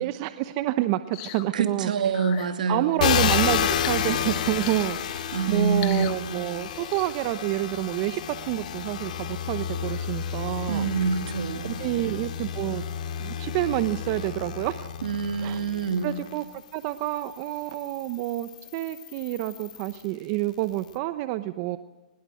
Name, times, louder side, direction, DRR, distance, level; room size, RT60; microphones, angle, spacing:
voice 1, 0.0-1.9 2.7-10.9 11.6-12.8 13.2-14.9 15.4-15.6 16.0-16.4 16.7-21.8, right 16 dB, 40° right, 11 dB, 0.9 m, -28 dB
sound 1, 1.1-1.5 2.1-2.5 3.6-4.0 4.6-4.9 5.7-6.2 6.9-7.1, left 16 dB, 45° left, 1.6 m, -39 dB
voice 2, 1.5-3.1 5.3-6.1 10.7-11.8 15.0-16.2, right 5 dB, 80° right, 6 dB, 2.5 m, -26 dB
sound 2, 3.0-16.4 17.1-20.0, left 8 dB, 70° left, 2.3 m, -30 dB
23.5 x 21.0 x 7.8 m, 1.2 s
hypercardioid pair, 135°, 4 cm